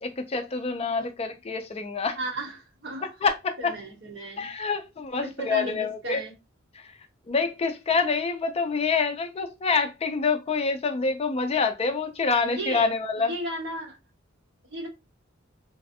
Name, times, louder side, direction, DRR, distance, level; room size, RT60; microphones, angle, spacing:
voice 1, 0.0-2.2 3.2-3.7 4.4-6.2 6.7-6.9 7.3-13.3, left 4 dB, 30° left, 0.4 m, -26 dB
voice 2, 2.2-3.1 3.6-4.5 5.2-6.3 12.4-12.9 13.3-14.0 14.7-14.9, right 1 dB, 60° right, 1.1 m, -35 dB
3.2 x 2.5 x 2.7 m
head